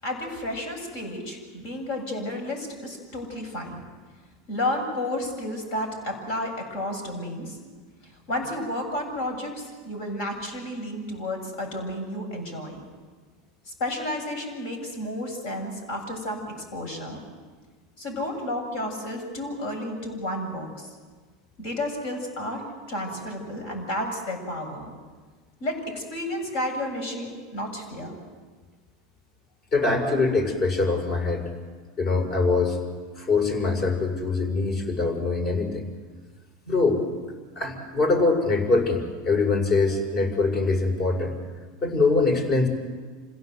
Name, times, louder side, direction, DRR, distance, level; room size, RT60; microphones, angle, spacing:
voice 1, 0.0-3.8 4.5-7.6 8.0-12.8 13.7-17.2 18.0-20.9 21.6-24.9 25.6-28.2, left 1 dB, 70° left, 3 dB, 7.5 m, -32 dB
voice 2, 29.7-31.4 32.0-32.8 33.2-35.9 36.7-37.0 37.6-41.3 41.8-42.7, left 3 dB, 50° left, 3 dB, 6.1 m, -23 dB
27.0 x 16.5 x 8.0 m, 1.4 s
supercardioid pair, 110°, 0 cm